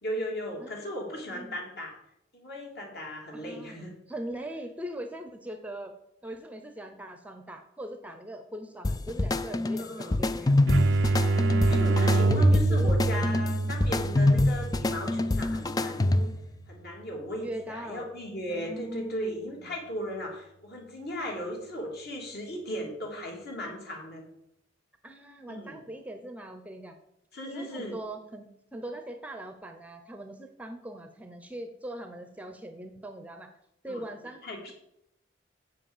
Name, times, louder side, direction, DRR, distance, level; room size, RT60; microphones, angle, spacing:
voice 1, 0.0-2.0 2.3-3.9 9.8-10.2 11.7-16.3 16.7-24.3 25.5-25.8 27.3-28.0 33.9-34.0 34.4-34.7, equal, 55° left, 0 dB, 3.1 m, -36 dB
voice 2, 0.6-1.6 3.3-5.9 6.2-10.6 12.3-13.3 13.9-14.2 17.4-18.1 18.5-19.8 25.0-27.0 27.5-33.5 33.8-34.4, right 1 dB, 10° right, 6 dB, 0.7 m, -41 dB
sound 1, 8.8-16.5, left 2 dB, 20° left, 0.4 m, -26 dB
sound 2, 10.7-16.2, right 2 dB, 65° right, 0.4 m, -26 dB
8.0 x 7.4 x 7.2 m, 0.80 s
head